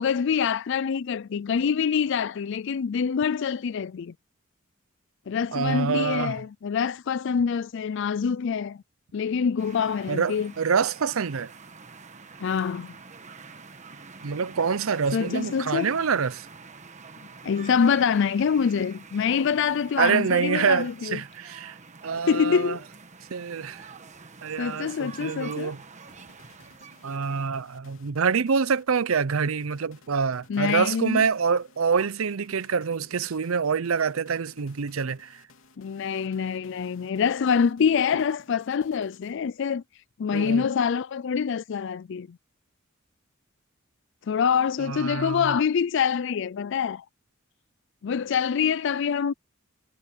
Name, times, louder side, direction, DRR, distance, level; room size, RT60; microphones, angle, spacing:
voice 1, 0.0-4.1 5.3-8.8 9.1-10.5 12.4-12.9 15.1-15.9 17.4-21.2 22.3-22.8 24.6-25.7 30.5-31.2 35.8-39.8 40.2-42.4 44.3-47.0 48.0-49.3, left 6 dB, 60° left, 0.4 m, -25 dB
voice 2, 5.5-6.4 10.1-11.5 14.2-16.5 20.0-21.8 22.0-22.8 23.3-23.9 24.4-25.8 27.0-35.4 40.3-40.7 44.8-45.6, right 6 dB, 90° right, 0.6 m, -26 dB
sound 1, 9.6-27.6, right 4 dB, 35° right, 1.3 m, -47 dB
sound 2, 26.1-39.7, left 3 dB, 80° left, 3.2 m, -57 dB
head